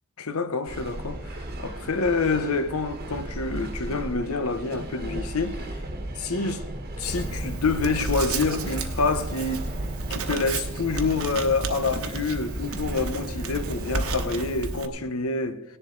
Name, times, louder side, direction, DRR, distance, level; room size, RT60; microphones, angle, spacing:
voice 1, 0.2-5.7 6.2-6.6 7.0-9.7 10.1-15.6, left 4 dB, 75° left, 0.9 m, -27 dB
sound 1, 0.7-14.3, right 1 dB, 45° right, 1.3 m, -35 dB
Writing, 7.0-14.9, right 3 dB, 70° right, 1.1 m, -33 dB
17.5 x 10.5 x 3.9 m
head